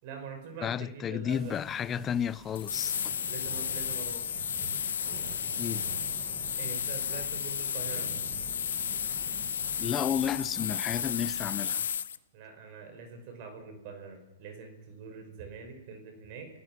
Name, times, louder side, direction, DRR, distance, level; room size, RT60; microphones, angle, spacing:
voice 1, 0.0-1.6 3.3-4.2 6.5-8.1 12.3-16.5, right 5 dB, 45° right, 5.1 m, -44 dB
voice 2, 0.6-3.0 5.6-5.8 9.8-11.8, left 9 dB, 20° left, 0.7 m, -32 dB
sound 1, 1.3-11.6, right 7 dB, 30° right, 1.9 m, -48 dB
sound 2, 2.6-12.2, left 8 dB, 85° left, 1.0 m, -33 dB
28.5 x 15.5 x 6.0 m
hypercardioid pair, 140°, 0 cm